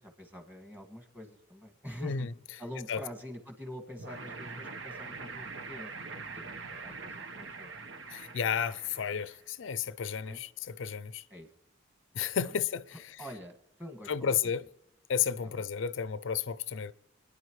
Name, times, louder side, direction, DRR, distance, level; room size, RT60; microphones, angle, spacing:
voice 1, 0.0-2.3 2.6-7.7 10.2-10.4 11.3-11.5 12.4-12.5 12.9-14.4 15.4-15.6, equal, 10° right, 1.9 m, -46 dB
sound 1, 4.0-9.4, right 4 dB, 75° right, 1.1 m, -43 dB
voice 2, 8.1-10.5 10.8-11.2 12.1-12.8 14.1-14.6 15.1-16.9, left 7 dB, 75° left, 0.4 m, -32 dB
27.0 x 10.0 x 3.2 m
head